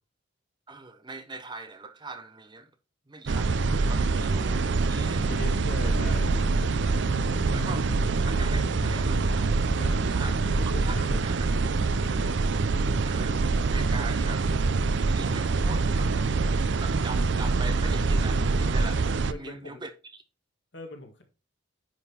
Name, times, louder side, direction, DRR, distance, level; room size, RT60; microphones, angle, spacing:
voice 1, 0.7-2.7 3.1-5.3 7.5-7.9 8.2-9.6 10.1-11.5 13.0-14.5 15.1-20.2, right 3 dB, 20° right, 0.6 m, -42 dB
sound 1, 3.3-19.3, right 3 dB, 60° right, 0.5 m, -25 dB
sound 2, 5.0-12.0, left 2 dB, 75° left, 0.7 m, -40 dB
voice 2, 5.2-6.3 9.8-11.2 11.9-12.4 19.3-19.8 20.7-21.2, left 2 dB, 60° left, 1.9 m, -41 dB
9.9 x 3.8 x 4.3 m
head